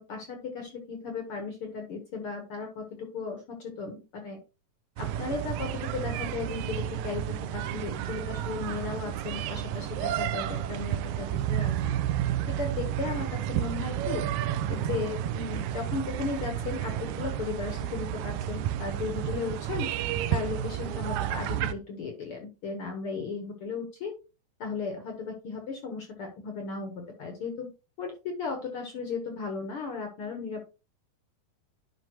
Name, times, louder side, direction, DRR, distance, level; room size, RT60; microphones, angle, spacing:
voice 1, 0.0-4.4 5.0-11.7 12.5-14.2 14.7-19.9 20.3-24.1 24.6-27.7 28.0-30.6, left 4 dB, 60° left, 3 dB, 1.5 m, -36 dB
sound 1, 5.0-21.7, right 11 dB, 80° right, 1.7 m, -31 dB
11.0 x 5.2 x 3.0 m, 0.31 s
omnidirectional pair, 4.0 m